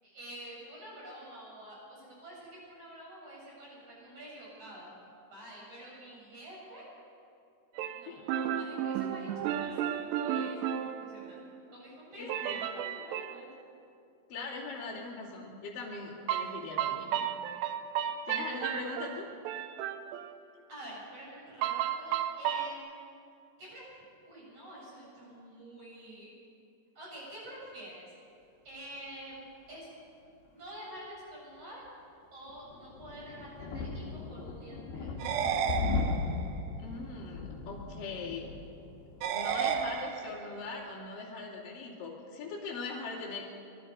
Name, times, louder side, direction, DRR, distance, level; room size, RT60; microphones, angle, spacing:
voice 1, 0.0-4.9 5.3-6.9 7.9-11.4 11.7-13.5 20.7-23.1 23.6-23.9 24.3-26.3 27.0-28.0 28.7-29.4 29.7-29.9 30.5-31.8 32.3-35.1 42.7-43.0, right 1 dB, 35° right, -5 dB, 8.7 m, -48 dB
sound 1, 7.8-11.6 12.3-13.4 16.3-20.4 21.6-22.7, right 10 dB, 90° right, 3.0 m, -34 dB
voice 2, 12.2-12.7 14.3-17.3 18.3-19.3 36.8-38.5 39.3-43.4, left 4 dB, 55° left, -5 dB, 4.3 m, -41 dB
sound 2, 32.5-40.0, left 4 dB, 75° left, 4.1 m, -37 dB
sound 3, 35.2-36.6 39.2-40.6, right 8 dB, 75° right, 2.0 m, -32 dB
24.0 x 21.5 x 5.4 m, 2.5 s
omnidirectional pair, 4.8 m